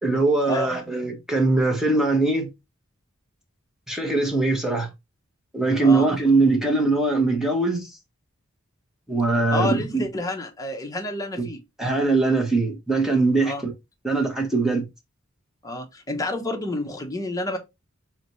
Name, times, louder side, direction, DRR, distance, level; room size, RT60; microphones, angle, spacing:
voice 1, 0.0-2.5 3.9-4.9 5.5-7.8 9.1-10.0 11.4-11.5 11.8-13.5 14.0-14.8, right 3 dB, ahead, 1.1 m, -21 dB
voice 2, 9.5-11.6 13.4-13.6 15.6-17.6, left 1 dB, 15° left, 0.8 m, -29 dB
4.0 x 3.2 x 3.0 m
head